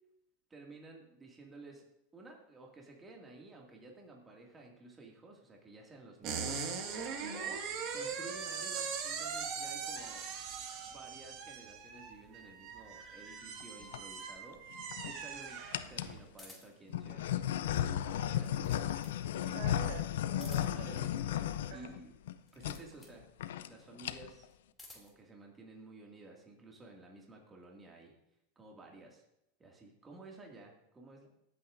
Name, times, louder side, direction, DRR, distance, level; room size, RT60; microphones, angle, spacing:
voice 1, 0.5-1.9 2.1-7.6 7.9-10.3 10.9-15.6 15.9-19.7 20.5-22.2 22.5-23.2 23.7-24.5 24.9-28.1 28.6-29.2 29.6-31.3, right 3 dB, 20° right, 0 dB, 2.2 m, -53 dB
sound 1, 6.2-16.2, right 6 dB, 50° right, 1.9 m, -41 dB
sound 2, 13.6-14.0 14.7-15.2 15.7-16.2 16.9-22.3 22.6-22.8 23.1-23.2 23.4-23.7 24.0-24.4, left 11 dB, 80° left, 0.5 m, -35 dB
sound 3, 16.4-16.9 18.2-19.2 20.3-20.9 22.4-23.2 24.4-25.2, left 3 dB, 10° left, 2.7 m, -56 dB
voice 2, 19.5-21.1 21.7-22.0, right 6 dB, 70° right, 1 dB, 3.2 m, -46 dB
21.5 x 8.6 x 2.6 m, 0.82 s
hypercardioid pair, 115°, 0 cm